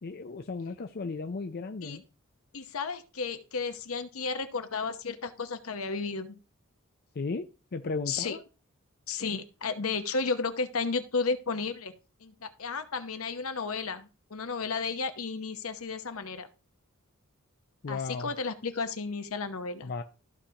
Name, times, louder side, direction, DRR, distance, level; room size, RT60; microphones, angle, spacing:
voice 1, 0.0-2.0 7.2-7.4 7.7-8.4 17.8-18.3 19.8-20.0, left 4 dB, 45° left, 0.5 m, -35 dB
voice 2, 2.5-6.4 8.1-8.4 9.1-11.9 12.2-16.5 17.9-19.9, left 4 dB, 75° left, 1.0 m, -33 dB
14.0 x 4.9 x 2.9 m
head